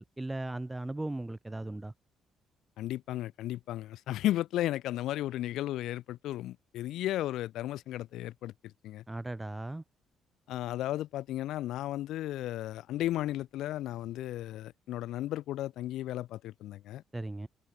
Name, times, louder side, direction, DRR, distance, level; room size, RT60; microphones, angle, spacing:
voice 1, 0.0-1.9 9.1-9.8 17.1-17.5, right 2 dB, 10° right, 0.5 m, -37 dB
voice 2, 2.8-9.0 10.5-17.0, left 14 dB, 85° left, 0.6 m, -34 dB
cardioid pair, 125°, 0 cm